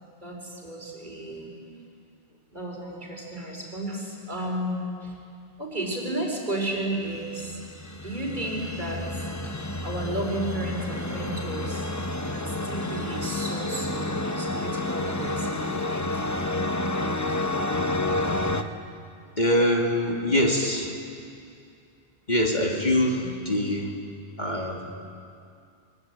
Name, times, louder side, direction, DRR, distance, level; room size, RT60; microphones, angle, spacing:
voice 1, 0.2-1.5 2.5-5.1 5.6-7.6 8.0-9.3 9.8-11.9 12.2-16.6 20.3-20.5 23.2-23.3, right 1 dB, 45° right, -1 dB, 5.0 m, -33 dB
sound 1, 7.1-18.6, left 2 dB, 15° left, 0.9 m, -30 dB
voice 2, 19.4-20.9 22.3-23.9 24.4-24.9, left 1 dB, 45° left, -1 dB, 2.8 m, -24 dB
23.5 x 22.5 x 8.9 m, 2.4 s
omnidirectional pair, 1.1 m